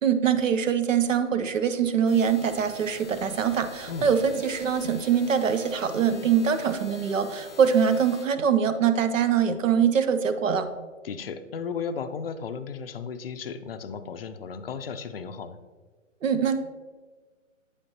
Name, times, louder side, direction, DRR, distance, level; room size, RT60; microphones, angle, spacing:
voice 1, 0.0-10.7 16.2-16.6, right 7 dB, 80° right, 10 dB, 0.8 m, -23 dB
sound 1, 2.0-8.2, left 3 dB, 5° left, 0.5 m, -46 dB
voice 2, 11.0-15.6, left 6 dB, 50° left, 10 dB, 0.4 m, -35 dB
8.3 x 5.1 x 2.8 m, 1.4 s
hypercardioid pair, 145°, 38 cm